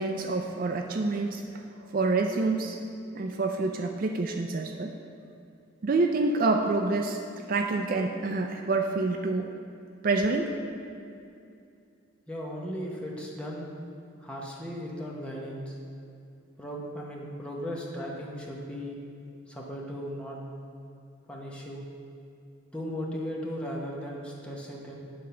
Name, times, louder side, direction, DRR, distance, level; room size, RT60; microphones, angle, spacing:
voice 1, 0.0-1.5 1.7-2.8 3.1-4.9 5.8-9.5 10.0-10.6, right 3 dB, 45° right, 4 dB, 0.4 m, -27 dB
voice 2, 12.3-13.7 14.2-15.8 16.6-19.0 19.5-20.4 21.3-21.8 22.7-25.0, equal, 5° left, -3 dB, 0.9 m, -36 dB
9.5 x 3.7 x 5.6 m, 2.5 s
head